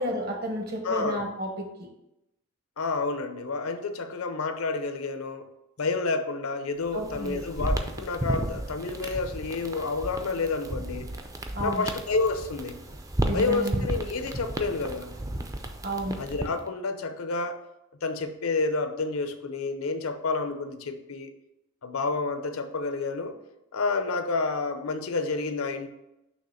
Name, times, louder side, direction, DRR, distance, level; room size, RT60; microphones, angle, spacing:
voice 1, 0.0-1.9 6.9-7.4 11.5-11.8 13.2-13.9 15.8-16.2, equal, 50° right, 2 dB, 1.2 m, -32 dB
voice 2, 0.8-1.2 2.8-5.5 5.8-11.1 11.6-12.8 13.3-15.1 16.2-17.6 18.0-21.3 21.8-23.4 23.7-25.9, left 3 dB, 90° left, 9 dB, 0.6 m, -29 dB
sound 1, 6.9-16.7, right 1 dB, 15° right, 0.4 m, -33 dB
6.5 x 2.9 x 5.6 m, 0.90 s
head